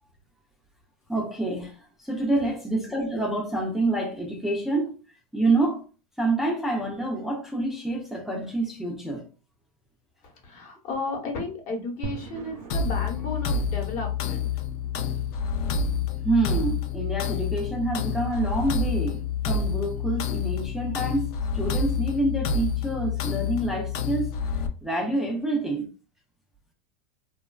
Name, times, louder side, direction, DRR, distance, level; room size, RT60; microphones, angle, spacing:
voice 1, 1.1-4.9 5.3-5.8 6.2-9.3 16.2-24.3 24.8-25.9, right 2 dB, ahead, 0.4 m, -27 dB
voice 2, 10.2-14.6, left 3 dB, 40° left, 1.0 m, -34 dB
sound 1, 12.0-22.3, right 5 dB, 85° right, 0.6 m, -47 dB
sound 2, 12.7-24.7, left 5 dB, 70° left, 0.5 m, -28 dB
2.9 x 2.2 x 2.3 m
supercardioid pair, 135°, 20 cm